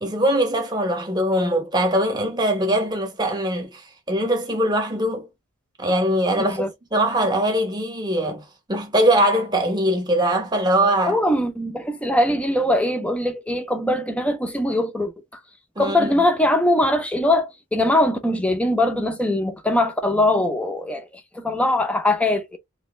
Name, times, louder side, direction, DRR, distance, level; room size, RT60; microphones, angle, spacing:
voice 1, 0.0-3.8 4.1-5.3 5.8-6.6 6.9-11.2 15.8-16.2, right 1 dB, 20° right, 0.9 m, -21 dB
voice 2, 6.4-6.7 11.1-15.1 15.8-21.1 21.3-22.6, left 1 dB, 5° left, 0.6 m, -21 dB
3.1 x 2.6 x 3.1 m
head